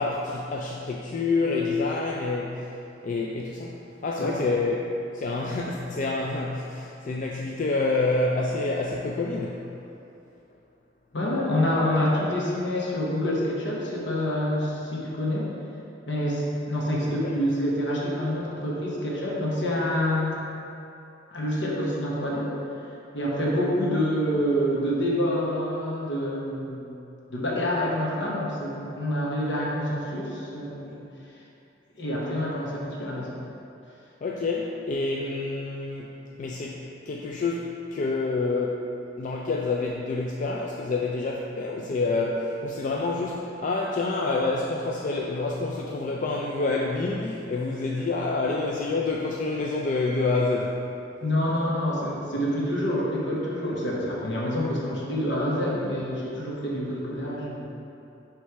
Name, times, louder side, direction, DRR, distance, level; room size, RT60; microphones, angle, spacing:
voice 1, 0.0-2.7 3.0-3.7 4.0-9.6 17.1-17.3 34.2-36.1 36.4-38.8 39.2-50.8, left 3 dB, 45° left, -2 dB, 0.4 m, -27 dB
voice 2, 11.1-15.5 16.1-20.4 21.3-22.5 23.1-27.0 27.3-31.0 32.0-33.4 51.2-57.7, equal, 70° left, -5 dB, 1.2 m, -27 dB
6.4 x 3.3 x 4.6 m, 2.7 s
head